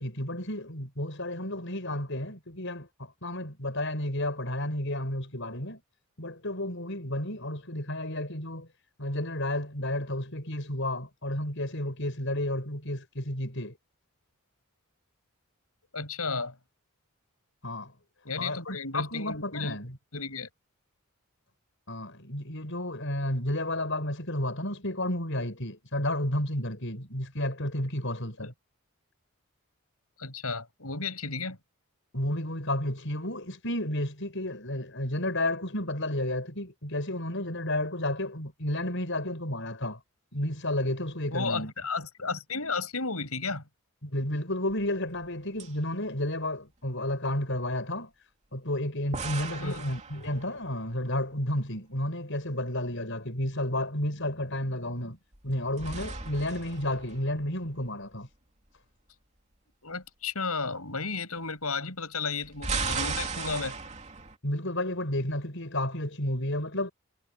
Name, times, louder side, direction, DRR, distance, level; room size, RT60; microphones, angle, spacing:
voice 1, 0.0-5.8 6.2-8.7 9.0-13.8 17.6-17.9 18.4-20.0 21.9-28.5 32.1-40.0 40.3-41.7 44.0-48.1 48.5-55.2 55.4-58.3 64.4-66.9, left 1 dB, 55° left, 7.2 m, -32 dB
voice 2, 15.9-16.5 18.2-19.8 20.1-20.5 28.4-28.5 30.2-31.6 41.3-43.6 49.6-49.9 59.8-63.8, left 4 dB, 75° left, 7.7 m, -33 dB
sound 1, 44.7-45.3 45.6-45.7 49.1-50.8 55.3-57.9 62.3-64.4, right 4 dB, 30° right, 3.2 m, -36 dB
head